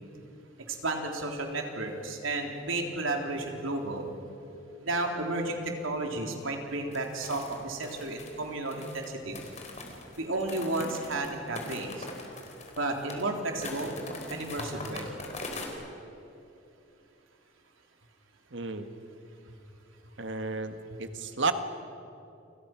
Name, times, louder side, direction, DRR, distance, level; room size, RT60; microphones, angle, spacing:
voice 1, 0.7-4.1 4.8-9.4 10.2-12.1 12.8-14.0 14.3-15.1 19.5-19.6, right 2 dB, 80° right, 2 dB, 3.7 m, -32 dB
sound 1, 6.9-15.7, left 3 dB, 35° left, 4.0 m, -42 dB
voice 2, 18.5-18.9 20.2-21.5, right 4 dB, 60° right, 8 dB, 1.7 m, -32 dB
30.0 x 26.0 x 6.1 m, 2.8 s
head